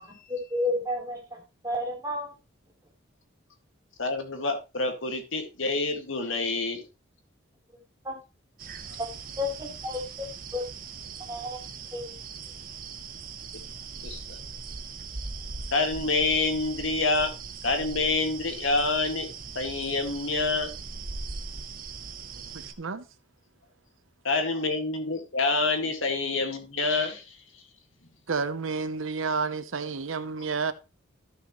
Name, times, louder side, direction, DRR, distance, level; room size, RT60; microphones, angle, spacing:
voice 1, 0.0-1.4 1.6-2.3 8.0-8.1 9.0-9.1 9.4-10.3 10.5-10.6 11.3-11.6 11.9-12.0, left 1 dB, 20° right, 3.4 m, -31 dB
voice 2, 4.0-6.9 14.0-14.4 15.7-17.3 17.6-19.3 19.6-20.7 24.2-27.4, left 3 dB, 80° left, 2.0 m, -27 dB
sound 1, 8.6-22.7, right 4 dB, 45° right, 0.9 m, -40 dB
voice 3, 22.5-23.1 28.3-30.7, right 4 dB, 85° right, 0.8 m, -30 dB
14.0 x 6.4 x 3.1 m
head